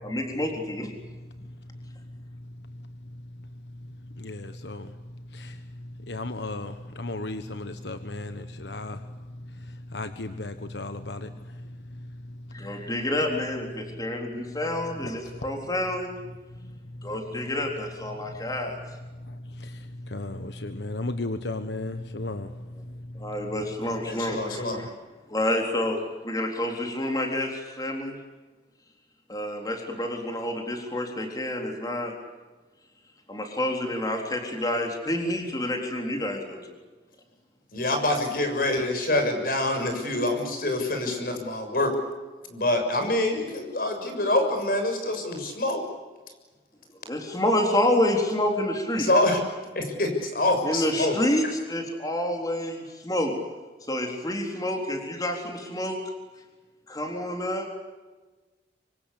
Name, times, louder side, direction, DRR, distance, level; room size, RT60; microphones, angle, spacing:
voice 1, 0.0-0.9 12.5-16.1 17.0-18.8 23.1-24.9 25.3-28.2 29.3-32.1 33.3-36.8 47.1-49.1 50.6-53.3 53.9-56.0 56.9-57.7, left 1 dB, 20° left, 3 dB, 3.8 m, -28 dB
voice 2, 1.2-13.0 13.9-14.3 15.0-15.6 16.6-17.5 18.2-18.5 19.1-23.5, left 2 dB, 75° left, 9 dB, 1.3 m, -37 dB
voice 3, 24.1-24.8 37.7-41.9 42.5-45.8 49.0-49.4 49.7-51.1, left 1 dB, 55° left, 5 dB, 6.8 m, -26 dB
25.5 x 25.5 x 8.6 m, 1.3 s
head